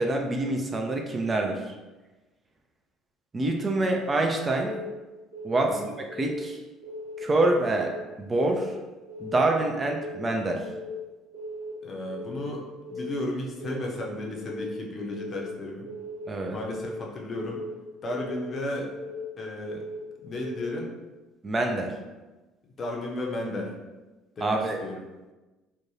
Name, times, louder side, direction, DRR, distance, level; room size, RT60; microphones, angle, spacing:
voice 1, 0.0-1.7 3.3-4.7 5.4-5.8 6.1-6.6 7.2-7.9 8.2-8.7 9.2-10.6 16.3-16.6 21.4-21.9 24.4-24.8, right 2 dB, 25° right, 2 dB, 0.3 m, -26 dB
Keyboard (musical) / Alarm, 4.6-5.0 5.3-5.7 6.1-6.5 6.8-7.2 7.6-8.0 8.3-8.7 9.1-9.5 9.8-10.2 10.6-11.0 11.3-11.7 12.1-12.5 12.8-13.2 13.6-14.0 14.3-14.7 15.1-15.5 15.8-16.2 16.6-17.0 17.4-17.7 18.1-18.5 18.9-19.2 19.6-20.0 20.4-20.7, left 1 dB, 75° right, 0.7 m, -38 dB
voice 2, 11.8-15.9 16.5-17.6 18.0-18.9 19.4-19.8 20.2-20.9 22.8-23.7 24.4-25.0, left 1 dB, 35° left, -1 dB, 0.6 m, -34 dB
2.6 x 2.2 x 2.8 m, 1.1 s
figure-of-eight pair, 55°, 0 cm